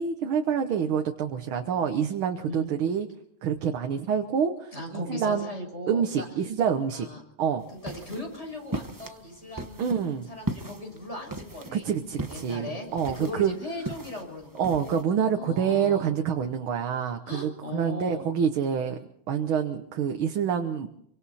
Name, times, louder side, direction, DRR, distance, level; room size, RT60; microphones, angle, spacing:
voice 1, 0.0-3.1 3.4-5.5 5.9-7.1 7.4-7.6 9.8-10.3 11.7-13.5 14.6-19.0 19.3-20.9, right 7 dB, 80° right, 5 dB, 2.0 m, -27 dB
voice 2, 4.7-6.3 6.9-7.2 7.7-11.9 12.2-15.1 15.3-16.1 17.3-18.3, left 1 dB, 30° left, 2 dB, 6.8 m, -38 dB
sound 1, 7.6-15.0, right 2 dB, 15° right, 0.7 m, -38 dB
27.5 x 24.5 x 4.3 m, 0.71 s
omnidirectional pair, 2.2 m